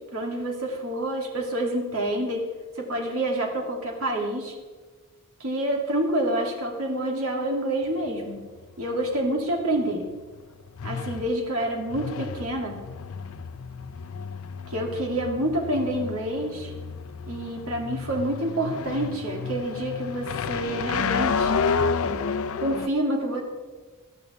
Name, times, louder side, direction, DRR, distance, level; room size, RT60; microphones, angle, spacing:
voice 1, 0.1-2.5 2.8-4.5 5.4-8.5 8.8-10.0 10.8-12.8 14.7-16.7 17.3-21.6 22.6-23.4, right 1 dB, 70° right, 0 dB, 2.7 m, -28 dB
sound 1, 7.8-22.9, left 5 dB, 70° left, 0.6 m, -31 dB
18.0 x 12.0 x 3.6 m, 1.4 s
head